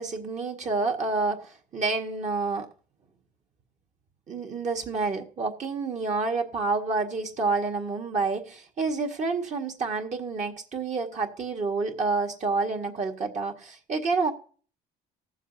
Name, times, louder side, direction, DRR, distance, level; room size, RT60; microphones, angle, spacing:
voice 1, 0.0-2.7 4.3-14.3, right 4 dB, 45° right, 1.8 m, -28 dB
19.0 x 7.2 x 2.8 m
cardioid pair, 110°, 17 cm